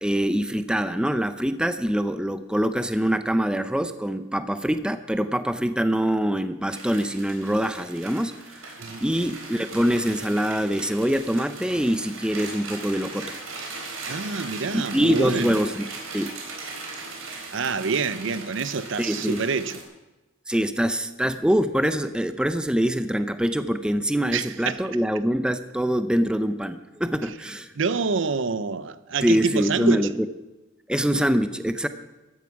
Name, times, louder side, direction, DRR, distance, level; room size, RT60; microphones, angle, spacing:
voice 1, 0.0-13.4 14.7-15.9 16.1-16.3 19.0-19.4 20.5-27.7 29.2-30.1 30.9-31.9, equal, 5° right, 0.5 m, -24 dB
sound 1, 6.7-19.8, right 3 dB, 80° right, 4.0 m, -38 dB
voice 2, 14.1-15.6 17.5-19.8 24.3-24.8 27.8-30.1, right 4 dB, 60° right, 0.6 m, -27 dB
14.5 x 11.0 x 5.9 m
head